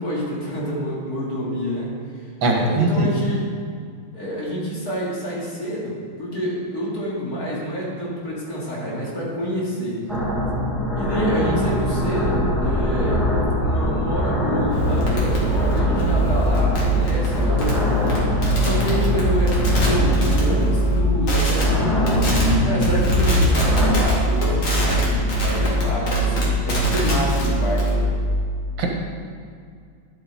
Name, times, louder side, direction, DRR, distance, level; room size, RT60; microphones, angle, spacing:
voice 1, 0.0-1.9 2.5-3.5 4.1-10.0 10.9-13.2 13.6-22.3 22.6-28.1, equal, 45° left, -6 dB, 3.1 m, -27 dB
voice 2, 2.4-3.1 28.8-28.9, right 2 dB, 70° right, 0 dB, 2.0 m, -20 dB
sound 1, 10.1-24.0, left 1 dB, ahead, 2.1 m, -23 dB
sound 2, 14.7-21.0 21.3-21.6 22.1-22.5 22.8-28.0, right 1 dB, 85° left, 3.1 m, -22 dB
11.5 x 8.5 x 4.2 m, 2.2 s
omnidirectional pair, 2.2 m